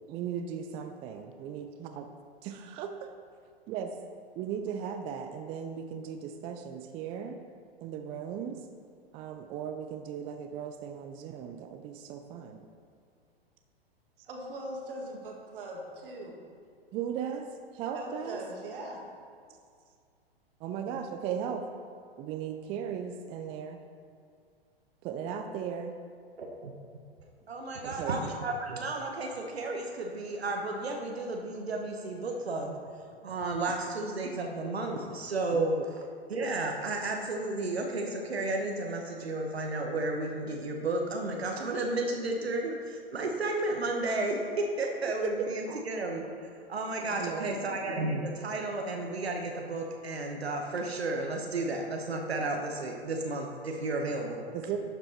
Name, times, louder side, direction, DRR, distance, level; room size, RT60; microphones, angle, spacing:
voice 1, 0.1-2.1 2.8-2.9 3.7-3.9 4.4-7.4 7.8-8.6 9.1-12.6 16.9-17.5 17.7-18.4 20.6-21.6 22.2-23.8 25.0-25.9 27.8-28.2 35.5-35.7 45.2-45.3 45.7-45.8 47.2-47.6 54.5-54.8, right 8 dB, 20° right, 6 dB, 0.4 m, -37 dB
voice 2, 14.3-16.4 17.9-19.0, right 1 dB, 60° right, 0 dB, 2.0 m, -40 dB
voice 3, 26.4-26.8 27.5-32.8 33.2-35.8 36.3-54.5, right 2 dB, 80° right, 2 dB, 1.0 m, -33 dB
11.5 x 5.2 x 4.3 m, 2.2 s
figure-of-eight pair, 105°, 31 cm